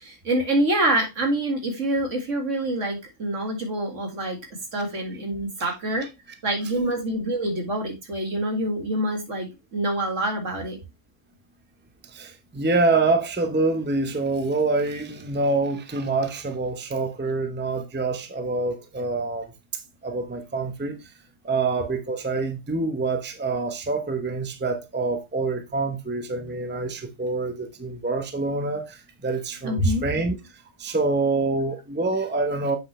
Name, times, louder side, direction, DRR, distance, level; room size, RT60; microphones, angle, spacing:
voice 1, 0.0-4.4 4.7-6.1 6.4-10.8 29.6-30.0, right 1 dB, 70° right, 2.3 m, -26 dB
voice 2, 12.0-21.1 21.4-30.4 30.8-32.8, right 3 dB, 10° right, 0.8 m, -26 dB
7.6 x 5.5 x 3.2 m
omnidirectional pair, 1.3 m